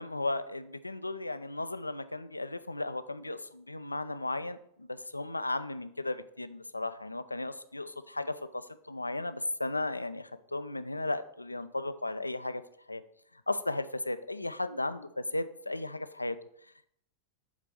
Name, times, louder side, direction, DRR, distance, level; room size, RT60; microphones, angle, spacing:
voice 1, 0.0-12.6 12.9-13.0 13.5-16.4, left 2 dB, 85° left, 12 dB, 0.4 m, -35 dB
7.2 x 4.1 x 4.8 m, 0.70 s
figure-of-eight pair, 90°, 0 cm